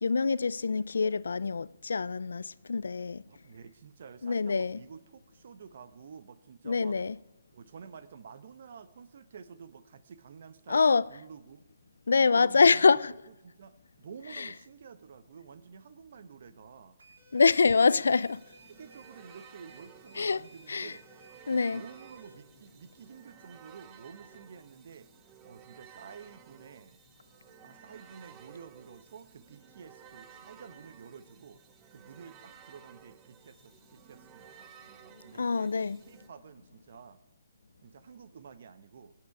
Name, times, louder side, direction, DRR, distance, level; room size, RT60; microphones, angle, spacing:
voice 1, 0.0-3.2 4.2-4.8 6.7-7.2 10.7-11.1 12.1-13.0 14.4-14.5 17.3-18.3 20.2-20.4 20.7-20.9 21.5-21.8 35.4-36.0, left 4 dB, 90° left, 0.4 m, -25 dB
voice 2, 3.3-7.0 7.5-11.6 12.3-13.0 13.3-17.0 17.6-18.0 18.7-21.1 21.5-25.1 25.4-27.0 27.6-31.6 31.9-35.7 36.1-37.2 37.8-39.1, right 6 dB, 55° right, 0.9 m, -50 dB
sound 1, 17.0-22.3, right 2 dB, 85° right, 3.0 m, -58 dB
sound 2, 17.8-36.3, right 9 dB, 15° right, 0.6 m, -56 dB
19.5 x 8.7 x 4.8 m
hypercardioid pair, 165°, 0 cm